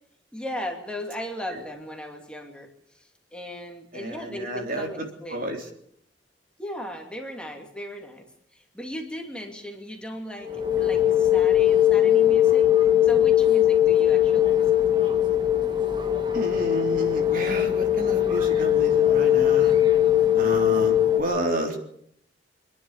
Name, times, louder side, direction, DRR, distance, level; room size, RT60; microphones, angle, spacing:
voice 1, 0.3-2.7 2.9-5.5 6.6-8.3 8.5-10.5 10.8-12.7 13.0-15.0, equal, 5° left, 2 dB, 2.6 m, -37 dB
voice 2, 3.9-5.7 16.3-19.8 20.3-21.8, right 1 dB, 50° right, 2 dB, 3.5 m, -31 dB
sound 1, 10.4-21.2, left 11 dB, 25° right, 2.0 m, -20 dB
27.5 x 11.0 x 8.8 m, 0.71 s
head